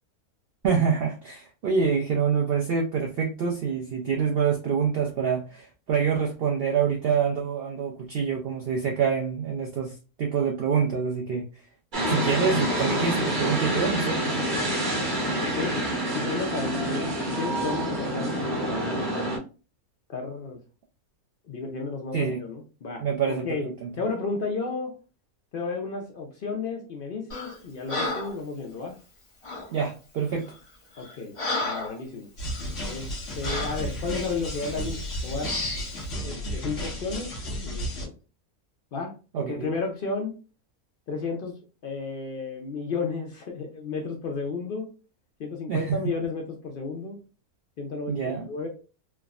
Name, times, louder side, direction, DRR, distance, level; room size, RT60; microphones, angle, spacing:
voice 1, 0.6-11.4 12.1-14.2 22.1-22.4 23.0-23.5 23.8-23.9 29.7-30.5 39.3-39.7 45.7-46.1 48.1-48.4, right 6 dB, 80° right, 0 dB, 0.5 m, -26 dB
sound 1, 11.9-19.4, equal, 40° right, 0.8 m, -27 dB
voice 2, 15.4-15.8 16.1-18.9 20.1-20.6 21.4-23.0 23.4-23.7 24.0-24.9 25.5-29.0 31.0-31.4 31.6-32.3 32.8-35.6 36.2-37.3 37.6-38.1 38.9-40.3 41.1-41.5 41.8-44.9 45.4-47.2 47.8-48.7, left 4 dB, 85° left, 2 dB, 0.4 m, -33 dB
Breathing, 27.3-27.6 27.9-28.4 29.4-29.7 30.4-30.5 31.0-32.0 32.5-32.6 33.4-33.8 34.5-34.8 35.4-35.9, left 2 dB, 35° left, 0.5 m, -32 dB
sound 2, 32.4-38.1, equal, 60° left, 1.1 m, -33 dB
3.3 x 2.0 x 2.3 m, 0.33 s
omnidirectional pair, 1.6 m